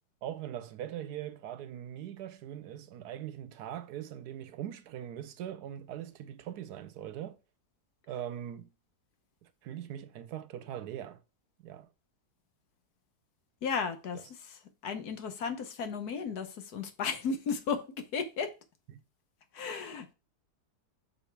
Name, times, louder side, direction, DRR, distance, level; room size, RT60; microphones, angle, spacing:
voice 1, 0.2-7.4 8.1-8.7 9.4-11.2 11.6-11.9 18.9-19.0, right 11 dB, 75° right, 1.1 m, -41 dB
voice 2, 13.6-14.2 14.8-17.8 18.1-18.5 19.5-20.1, left 5 dB, 70° left, 1.5 m, -34 dB
6.7 x 4.4 x 4.6 m
omnidirectional pair, 1.7 m